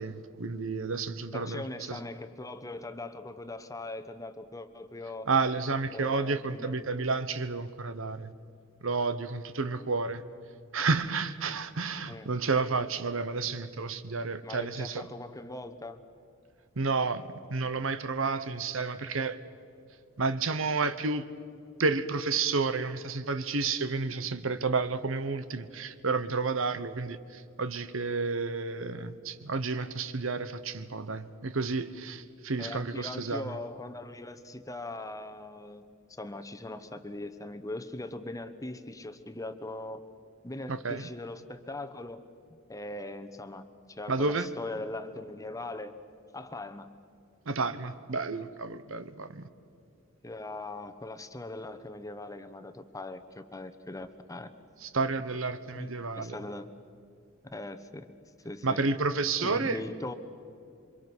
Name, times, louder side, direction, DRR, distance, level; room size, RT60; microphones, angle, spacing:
voice 1, 0.0-2.0 5.3-8.3 8.8-10.2 10.7-15.1 16.8-19.4 20.2-21.2 21.8-33.6 40.7-41.1 44.1-44.5 47.5-49.5 54.8-56.4 58.6-59.8, right 4 dB, 70° right, 1.0 m, -31 dB
voice 2, 1.3-5.3 5.9-6.8 12.1-12.3 14.4-16.0 32.6-35.8 36.2-40.0 40.4-42.2 42.5-46.0 46.3-46.9 50.2-54.5 55.7-56.7 57.5-58.1 58.4-58.8 59.4-60.1, left 2 dB, 15° left, 1.0 m, -40 dB
28.0 x 25.0 x 6.2 m
head